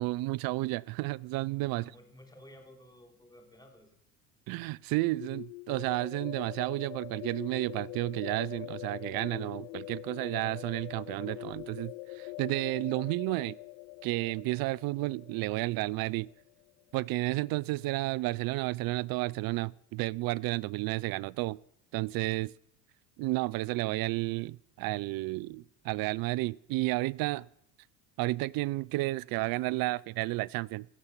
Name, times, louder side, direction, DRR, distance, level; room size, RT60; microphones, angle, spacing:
voice 1, 0.0-1.8 4.5-13.6 14.0-16.3 16.9-21.6 21.9-22.5 23.2-27.5 28.2-30.9, right 20 dB, 50° right, 0.5 m, -32 dB
voice 2, 1.6-4.0, left 1 dB, 10° left, 3.4 m, -54 dB
sound 1, 5.2-16.9, left 25 dB, 65° left, 0.5 m, -44 dB
15.5 x 7.2 x 8.2 m
hypercardioid pair, 80°, 48 cm